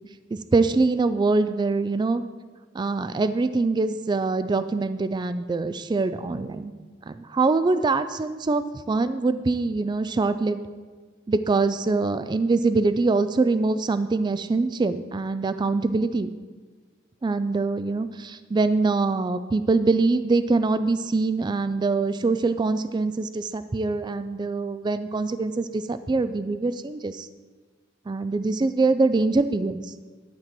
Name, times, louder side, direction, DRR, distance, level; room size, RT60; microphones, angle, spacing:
voice 1, 0.3-2.2 2.7-6.7 7.1-10.6 11.3-16.3 17.2-27.3 28.1-29.9, right 3 dB, 25° right, 11 dB, 0.3 m, -24 dB
11.5 x 4.5 x 7.6 m, 1.4 s
head